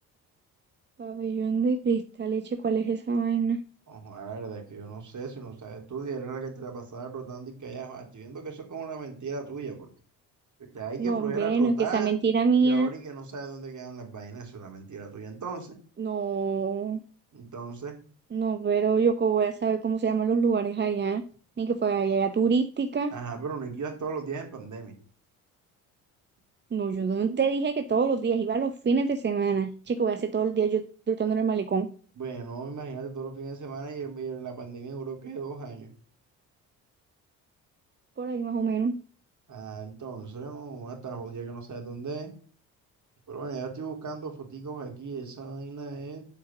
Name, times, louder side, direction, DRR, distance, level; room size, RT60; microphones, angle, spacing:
voice 1, 1.0-3.6 11.0-12.9 16.0-17.0 18.3-21.2 21.6-23.1 26.7-31.9 38.2-38.9, right 5 dB, 25° right, 9 dB, 0.8 m, -26 dB
voice 2, 3.9-9.9 10.7-12.1 12.6-15.8 17.3-18.0 23.1-24.9 32.2-35.9 39.5-42.3 43.3-46.2, right 5 dB, 45° right, 2 dB, 3.6 m, -37 dB
7.6 x 5.1 x 7.1 m, 0.41 s
hypercardioid pair, 50°, 43 cm